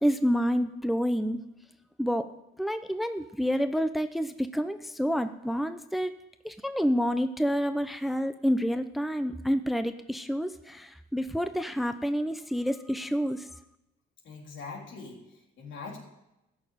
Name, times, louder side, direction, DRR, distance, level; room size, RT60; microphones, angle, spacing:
voice 1, 0.0-1.4 2.0-2.3 2.6-6.1 6.4-13.4, equal, ahead, 10 dB, 0.7 m, -28 dB
voice 2, 14.2-16.0, left 4 dB, 70° left, 0 dB, 3.6 m, -42 dB
14.5 x 6.6 x 9.3 m, 0.90 s
cardioid pair, 90°, 20 cm